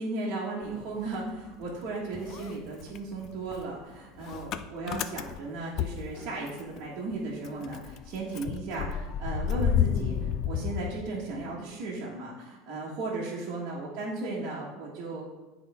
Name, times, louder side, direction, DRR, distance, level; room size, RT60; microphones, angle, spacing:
voice 1, 0.0-15.2, right 3 dB, 45° right, -6 dB, 1.4 m, -36 dB
Motor vehicle (road) / Engine starting, 0.6-1.8 2.1-6.8 7.1-7.2 7.4-11.6, left 8 dB, 40° left, 0.4 m, -32 dB
10.5 x 4.0 x 3.5 m, 1.2 s
supercardioid pair, 155°, 0 cm